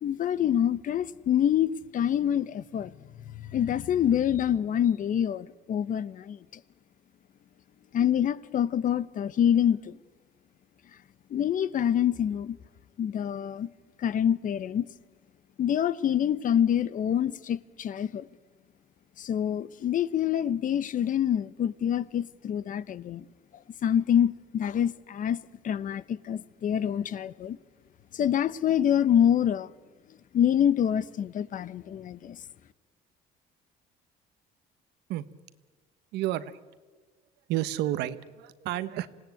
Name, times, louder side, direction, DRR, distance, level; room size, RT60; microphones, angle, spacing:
voice 1, 0.0-6.4 7.9-10.0 11.3-12.6 13.0-13.7 14.0-14.9 15.6-18.3 19.2-23.2 23.8-25.4 25.6-27.6 28.1-29.7 30.3-32.4, left 9 dB, 50° left, 0.9 m, -26 dB
voice 2, 36.1-36.6 37.5-39.1, right 14 dB, 90° right, 1.2 m, -30 dB
26.0 x 18.0 x 9.2 m
cardioid pair, 110°, 17 cm